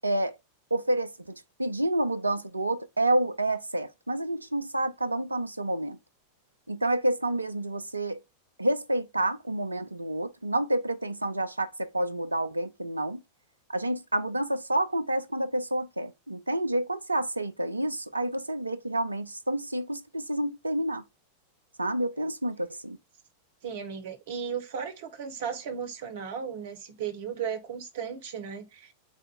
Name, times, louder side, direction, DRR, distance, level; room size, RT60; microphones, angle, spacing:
voice 1, 0.0-0.4 0.7-6.0 6.7-8.2 8.6-13.2 13.7-21.0 21.8-23.0, right 1 dB, 80° right, 0.4 m, -29 dB
voice 2, 23.6-28.9, right 7 dB, 55° right, 0.9 m, -35 dB
4.2 x 2.6 x 4.2 m
figure-of-eight pair, 90°, 0 cm